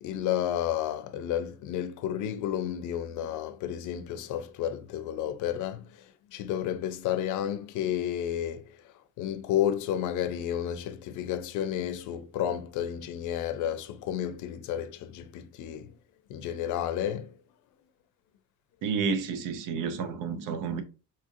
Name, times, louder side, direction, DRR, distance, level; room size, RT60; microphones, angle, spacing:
voice 1, 0.0-5.9 6.3-8.6 9.2-15.9 16.3-17.3, left 10 dB, 70° left, 0.5 m, -31 dB
voice 2, 18.8-20.8, right 5 dB, 85° right, 0.7 m, -30 dB
4.2 x 2.4 x 2.6 m
cardioid pair, 170°, 32 cm